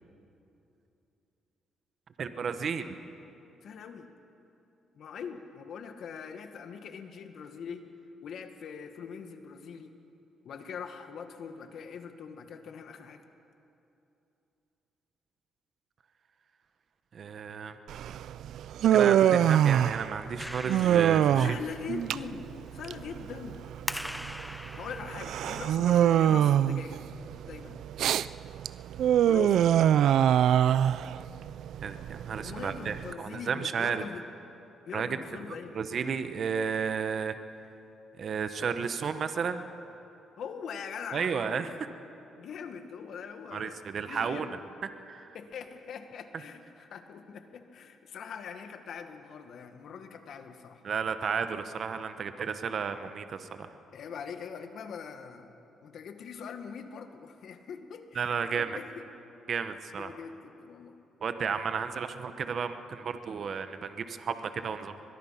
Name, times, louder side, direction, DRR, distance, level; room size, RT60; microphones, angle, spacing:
voice 1, 2.2-2.9 17.1-17.8 18.9-21.6 31.8-34.0 34.9-35.1 35.7-37.4 38.2-39.6 41.1-41.7 43.5-44.5 45.1-45.3 50.8-53.7 58.1-58.8 59.5-60.1 61.2-64.9, right 6 dB, 55° right, 9 dB, 1.1 m, -33 dB
voice 2, 3.6-4.1 4.9-7.9 8.2-9.9 10.4-13.2 21.3-22.4 22.7-23.6 24.7-27.0 27.4-27.8 29.2-29.8 32.4-34.2 34.8-35.8 40.4-41.8 42.4-44.6 45.3-50.8 53.9-55.5 55.8-59.0 60.0-61.0, left 6 dB, 65° left, 7 dB, 1.8 m, -42 dB
Human voice, 17.9-33.1, right 10 dB, 75° right, 0.4 m, -25 dB
Clapping, 20.4-27.1, equal, 5° left, 0.6 m, -43 dB
22.5 x 22.0 x 5.9 m, 2.9 s
cardioid pair, 90°, 0 cm